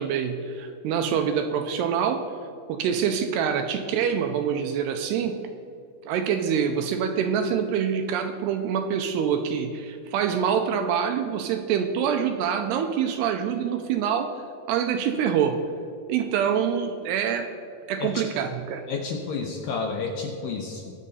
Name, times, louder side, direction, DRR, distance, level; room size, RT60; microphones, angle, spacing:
voice 1, 0.0-2.2 2.7-5.4 6.1-14.3 14.7-15.6 16.1-17.5 17.9-18.9, right 7 dB, 80° right, 6 dB, 2.5 m, -25 dB
voice 2, 18.9-20.9, left 4 dB, 75° left, 2 dB, 2.2 m, -30 dB
22.0 x 7.4 x 4.1 m, 2.6 s
omnidirectional pair, 5.2 m